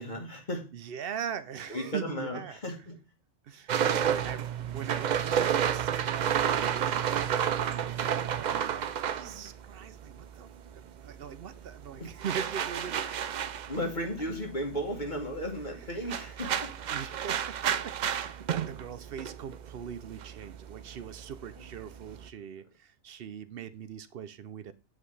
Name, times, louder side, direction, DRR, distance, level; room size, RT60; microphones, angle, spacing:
voice 1, 0.0-0.7 1.7-3.0 3.5-4.0 12.0-12.1 13.1-13.2 13.7-16.7, equal, 35° left, 1 dB, 1.4 m, -35 dB
voice 2, 0.7-2.6 3.4-4.5 4.7-13.7 14.2-14.3 16.0-16.3 16.9-24.7, right 8 dB, 60° right, 14 dB, 0.7 m, -41 dB
sound 1, 3.7-10.4 10.7-22.3, right 9 dB, 90° right, 0.4 m, -31 dB
7.7 x 4.9 x 3.2 m, 0.33 s
omnidirectional pair, 1.4 m